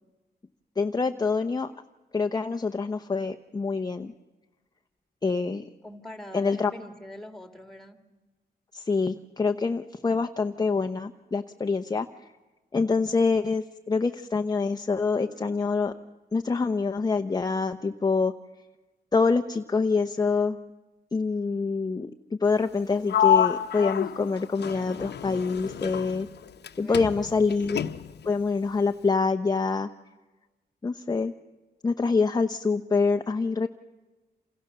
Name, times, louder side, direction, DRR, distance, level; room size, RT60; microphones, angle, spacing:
voice 1, 0.8-1.7 2.1-4.1 5.2-5.6 6.3-6.7 8.7-12.3 12.7-15.9 16.3-18.3 19.1-20.6 21.1-22.1 22.4-26.3 26.8-27.8 28.3-29.9 30.8-31.3 31.8-33.7, left 4 dB, 25° left, 6 dB, 0.8 m, -26 dB
voice 2, 5.8-8.0 26.8-27.3, left 1 dB, ahead, 8 dB, 2.4 m, -43 dB
Sliding door, 23.1-26.7 26.9-28.3, left 9 dB, 85° left, 1.0 m, -27 dB
29.0 x 28.0 x 6.8 m, 1.2 s
wide cardioid pair, 135°, 17 cm